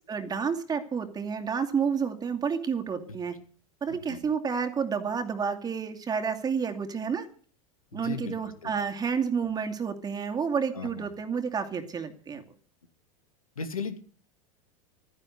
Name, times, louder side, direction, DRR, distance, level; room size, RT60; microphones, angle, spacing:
voice 1, 0.1-3.3 3.8-7.3 7.9-12.4, right 6 dB, 20° right, 5 dB, 2.5 m, -30 dB
voice 2, 3.9-4.2 7.9-8.4 8.6-8.7 10.7-11.1 13.6-14.0, left 5 dB, 85° left, 8 dB, 2.4 m, -36 dB
14.0 x 10.5 x 7.8 m, 0.44 s
hypercardioid pair, 90°, 18 cm